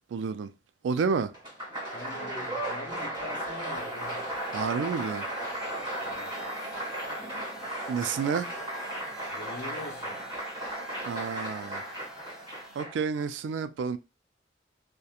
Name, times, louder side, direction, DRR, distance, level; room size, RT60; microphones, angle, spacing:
voice 1, 0.1-0.5 0.8-1.3 4.5-5.3 7.9-8.6 11.1-11.8 12.8-14.0, right 5 dB, 80° right, 0.3 m, -30 dB
Applause, 1.3-13.2, right 1 dB, 30° right, 1.4 m, -35 dB
voice 2, 1.9-4.3 6.0-6.4 9.3-10.2, left 2 dB, 75° left, 0.7 m, -43 dB
sound 1, 3.2-12.8, equal, ahead, 0.5 m, -50 dB
2.3 x 2.1 x 2.8 m
head